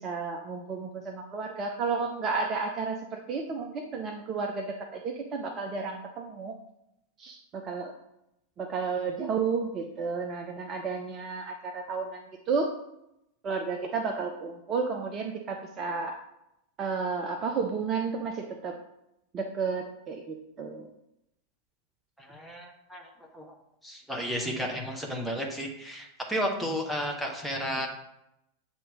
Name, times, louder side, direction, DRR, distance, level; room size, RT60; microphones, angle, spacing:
voice 1, 0.0-6.5 7.2-7.9 8.6-12.7 13.4-16.2 16.8-18.7 19.3-20.9, right 5 dB, 30° right, 3 dB, 0.6 m, -32 dB
voice 2, 22.2-23.0 23.3-23.5 23.8-27.9, equal, ahead, -1 dB, 1.1 m, -33 dB
8.1 x 2.9 x 4.8 m, 0.83 s
figure-of-eight pair, 90°, 0 cm